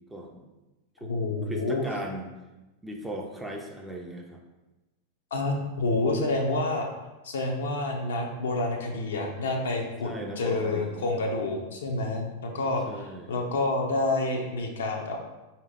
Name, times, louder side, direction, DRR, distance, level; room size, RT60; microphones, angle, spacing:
voice 1, 0.1-0.4 1.0-1.1 1.5-2.3 2.8-4.4 10.0-11.3 12.9-13.3, right 1 dB, 5° right, 0 dB, 0.5 m, -37 dB
voice 2, 1.0-1.8 5.3-6.9 7.2-15.2, left 2 dB, 65° left, 2 dB, 0.6 m, -28 dB
4.6 x 2.8 x 3.5 m, 1.1 s
figure-of-eight pair, 90°, 0 cm